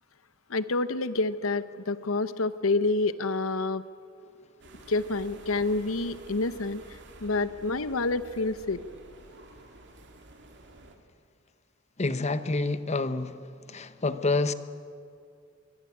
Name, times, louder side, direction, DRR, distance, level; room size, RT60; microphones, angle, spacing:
voice 1, 0.5-3.8 4.9-6.8 7.2-8.8, left 3 dB, 85° left, 1.0 m, -28 dB
sound 1, 4.6-11.0, right 2 dB, 60° right, 2.6 m, -50 dB
voice 2, 12.0-13.4 13.7-14.5, left 3 dB, 35° left, 1.0 m, -28 dB
24.0 x 21.0 x 8.6 m
head